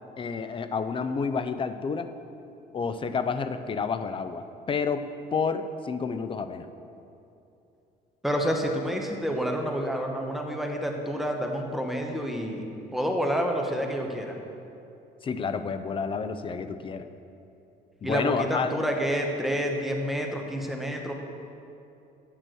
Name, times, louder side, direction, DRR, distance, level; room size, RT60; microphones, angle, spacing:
voice 1, 0.2-2.1 2.7-6.7 15.2-17.1 18.0-18.7, left 5 dB, 30° left, 10 dB, 0.5 m, -30 dB
voice 2, 8.2-12.7 12.9-14.4 18.0-21.1, equal, ahead, 1 dB, 1.1 m, -28 dB
9.2 x 6.1 x 6.2 m, 2.7 s
cardioid pair, 110°, 17 cm